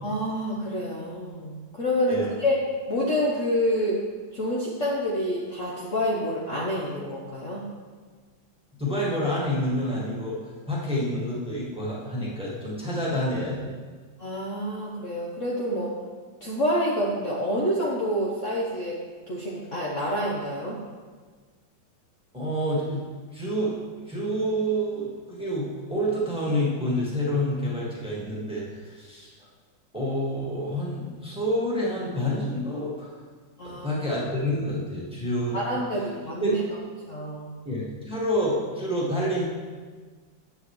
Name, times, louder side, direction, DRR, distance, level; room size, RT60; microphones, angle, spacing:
voice 1, 0.0-2.6 2.9-4.0 4.3-7.6 14.2-16.0 16.4-19.0 19.3-20.8 33.6-33.9 35.5-36.6 37.1-37.5, equal, 45° left, -5 dB, 1.2 m, -27 dB
voice 2, 8.8-10.4 10.7-13.7 22.3-23.0 23.3-23.7 24.1-29.3 29.9-33.1 33.6-36.1 36.4-36.6 37.6-39.4, equal, 5° right, -6 dB, 1.6 m, -28 dB
9.5 x 7.5 x 3.2 m, 1.5 s
omnidirectional pair, 2.1 m